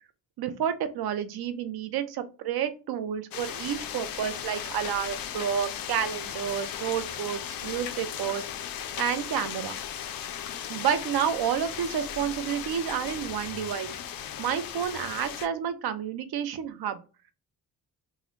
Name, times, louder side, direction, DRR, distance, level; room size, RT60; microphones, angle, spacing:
voice 1, 0.4-8.4 9.0-9.7 10.7-13.9 14.4-17.0, right 8 dB, 80° right, 10 dB, 0.6 m, -30 dB
sound 1, 3.3-15.5, left 9 dB, 70° left, 0.5 m, -37 dB
3.6 x 2.0 x 3.1 m, 0.33 s
wide cardioid pair, 165°, 37 cm